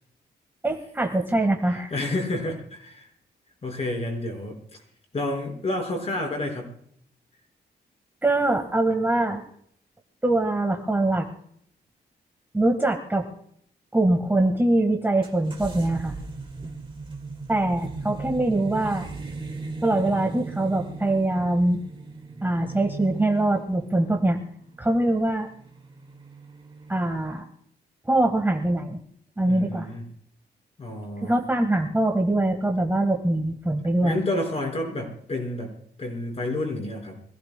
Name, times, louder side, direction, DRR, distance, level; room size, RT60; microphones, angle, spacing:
voice 1, 0.6-1.9 8.2-9.4 10.2-11.3 12.5-13.3 13.9-16.1 17.5-19.1 19.8-21.8 22.4-24.4 24.8-25.5 26.9-27.4 28.1-29.0 29.4-29.9 31.2-34.2, right 2 dB, 10° right, 3 dB, 1.5 m, -23 dB
voice 2, 1.9-3.1 3.6-4.6 5.1-6.7 29.4-30.0 30.8-31.4 34.0-35.7 36.0-37.2, left 2 dB, 35° left, 1 dB, 5.0 m, -29 dB
sound 1, 15.2-27.4, right 3 dB, 30° right, 1.9 m, -38 dB
25.5 x 15.5 x 2.2 m, 0.66 s
wide cardioid pair, 145°, 18 cm